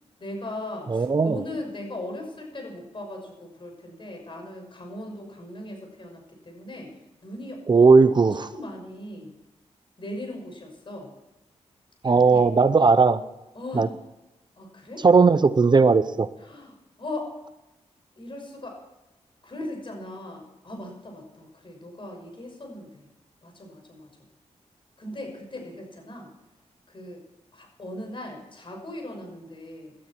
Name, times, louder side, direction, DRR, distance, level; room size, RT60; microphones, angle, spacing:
voice 1, 0.2-6.9 7.2-8.1 8.4-9.3 10.0-11.1 12.1-12.5 13.5-13.9 14.6-15.1 16.4-17.3 18.2-18.8 19.4-23.1 23.4-24.1 25.0-26.3 26.9-27.2 27.5-29.9, left 1 dB, 45° left, 3 dB, 6.1 m, -38 dB
voice 2, 0.9-1.4 7.7-8.5 12.0-13.2 13.7-13.9 15.0-16.3, right 4 dB, 35° right, 13 dB, 0.7 m, -17 dB
18.0 x 12.0 x 4.6 m, 0.99 s
cardioid pair, 70°, 12 cm